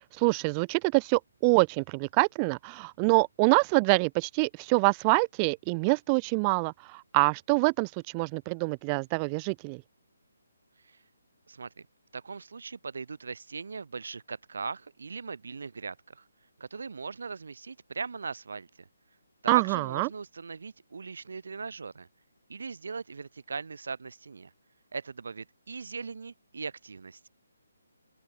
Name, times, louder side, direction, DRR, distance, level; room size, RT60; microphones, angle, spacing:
voice 1, 0.2-9.8 19.5-20.1, right 33 dB, 20° right, 0.5 m, -25 dB
voice 2, 11.5-11.9 12.1-16.2 16.6-18.9 19.4-22.1 22.5-24.5 24.9-27.3, right 4 dB, 60° right, 2.9 m, -39 dB
open air
figure-of-eight pair, 140°, 0 cm